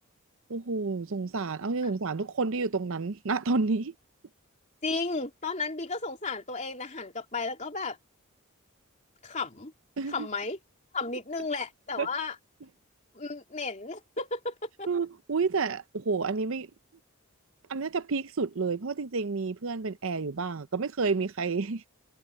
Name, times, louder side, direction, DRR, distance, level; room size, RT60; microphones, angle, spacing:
voice 1, 0.5-3.9 10.0-10.3 12.0-12.1 14.9-16.7 17.7-21.8, right 4 dB, 60° right, 0.6 m, -30 dB
voice 2, 4.8-8.0 9.2-9.7 10.1-10.6 10.9-12.4 13.1-14.9, left 3 dB, 30° left, 3.2 m, -33 dB
head